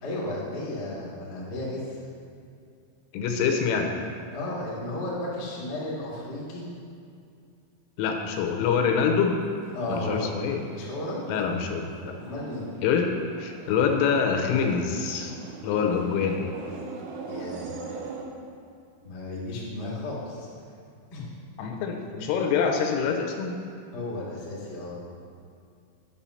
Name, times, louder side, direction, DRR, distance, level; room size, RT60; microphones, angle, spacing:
voice 1, 0.0-2.0 4.3-6.6 9.7-10.4 10.7-11.2 12.2-12.7 17.3-17.7 19.0-20.5 21.1-21.3 23.9-25.0, left 1 dB, 55° left, -6 dB, 1.1 m, -33 dB
voice 2, 3.1-3.9 8.0-9.3 9.9-10.6 11.3-12.1 12.8-15.4 15.6-16.5 21.6-23.6, left 6 dB, 85° left, 3 dB, 3.3 m, -25 dB
sound 1, 9.3-18.2, right 4 dB, 80° right, 2.6 m, -42 dB
8.8 x 6.9 x 5.6 m, 2.4 s
omnidirectional pair, 5.7 m